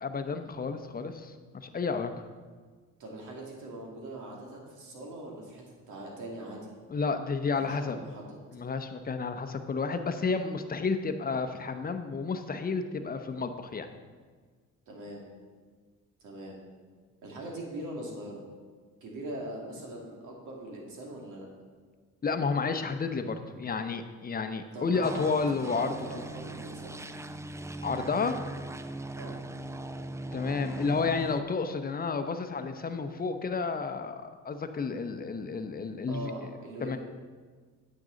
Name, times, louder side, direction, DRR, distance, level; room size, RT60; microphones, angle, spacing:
voice 1, 0.0-2.1 6.9-8.0 8.5-13.9 22.2-25.9 27.8-28.4 30.3-36.3 36.8-37.0, left 4 dB, 30° left, 8 dB, 0.8 m, -31 dB
voice 2, 3.0-6.7 7.5-8.4 14.9-15.3 16.2-16.6 17.2-18.4 19.0-21.5 24.7-25.2 25.6-27.0 29.2-29.4 36.1-37.0, right 1 dB, 80° right, -2 dB, 2.4 m, -41 dB
sound 1, 25.0-31.4, right 2 dB, 10° right, 0.4 m, -40 dB
9.4 x 7.6 x 4.0 m, 1.5 s
cardioid pair, 90°, 30 cm